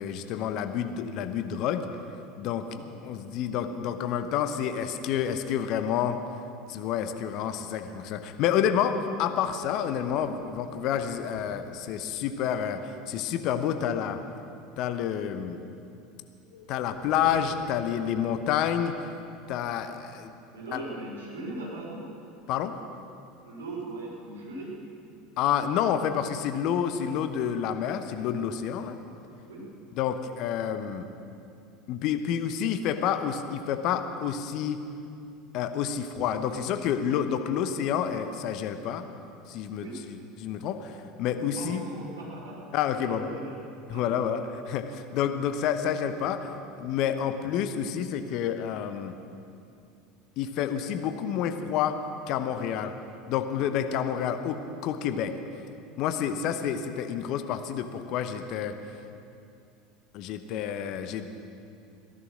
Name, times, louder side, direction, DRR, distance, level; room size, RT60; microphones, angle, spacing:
voice 1, 0.0-1.8 2.4-6.2 6.7-14.2 14.8-15.6 16.7-18.9 19.5-20.3 20.7-20.8 22.5-22.7 25.4-29.0 29.9-31.1 31.9-34.8 35.5-39.1 39.5-41.8 42.7-43.3 43.9-44.4 44.7-46.5 46.8-49.1 50.4-52.0 52.3-52.9 53.3-55.3 56.0-58.7 60.1-61.3, left 9 dB, 50° left, 9 dB, 0.9 m, -29 dB
voice 2, 2.6-3.1 20.5-22.0 23.4-24.8 29.5-29.7 39.8-40.0 41.4-42.6 43.0-43.6 43.9-44.1 56.2-56.4, right 2 dB, 70° right, -5 dB, 4.6 m, -39 dB
sound 1, 9.6-11.9 16.5-18.8, left 2 dB, 70° left, 2.8 m, -49 dB
16.0 x 11.0 x 6.3 m, 2.6 s
figure-of-eight pair, 75°, 0 cm